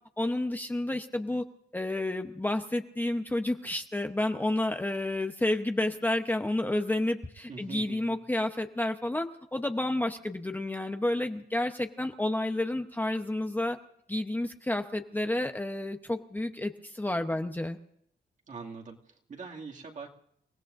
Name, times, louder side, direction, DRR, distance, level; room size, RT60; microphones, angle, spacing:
voice 1, 0.2-1.4 1.7-13.8 14.1-17.8, left 1 dB, 10° left, 5 dB, 0.9 m, -30 dB
voice 2, 7.5-8.2 18.5-20.1, right 4 dB, 45° right, 0 dB, 2.4 m, -43 dB
30.0 x 17.5 x 2.6 m, 0.73 s
wide cardioid pair, 140°, 18 cm